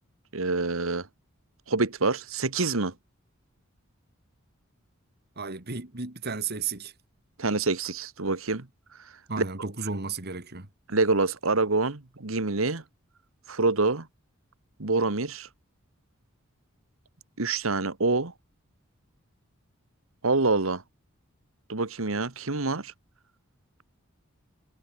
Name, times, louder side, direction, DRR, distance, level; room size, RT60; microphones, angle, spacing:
voice 1, 0.3-1.1 1.7-2.9 7.4-8.6 10.9-12.8 13.5-14.1 14.8-15.5 17.4-18.3 20.2-20.8 21.7-22.9, right 3 dB, 75° right, 1.7 m, -26 dB
voice 2, 5.4-6.9 9.3-10.7, right 4 dB, 50° right, 2.5 m, -33 dB
head